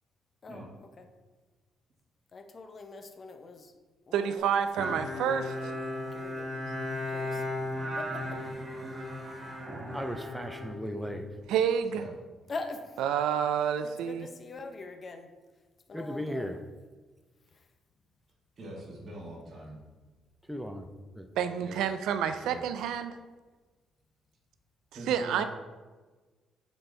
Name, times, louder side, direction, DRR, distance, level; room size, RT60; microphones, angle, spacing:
voice 1, 2.3-3.6 4.1-4.5 5.2-5.7 6.1-6.4 7.1-7.4 8.0-8.1 12.5-12.8 13.8-15.3 15.9-16.5, left 3 dB, 40° left, 6 dB, 0.7 m, -42 dB
voice 2, 4.1-5.7 11.5-12.0 13.0-14.3 21.4-23.2 25.1-25.4, right 8 dB, 90° right, 10 dB, 0.4 m, -29 dB
Bowed string instrument, 4.8-11.4, left 1 dB, 25° right, 1.6 m, -36 dB
voice 3, 9.9-11.3 15.9-16.6 20.5-20.9 21.2-21.3, equal, 5° right, 5 dB, 0.5 m, -36 dB
voice 4, 18.6-19.8 21.6-21.9 22.2-22.6 24.9-25.5, right 1 dB, 45° right, -4 dB, 1.7 m, -44 dB
8.0 x 4.1 x 3.3 m, 1.3 s
cardioid pair, 90°, 0 cm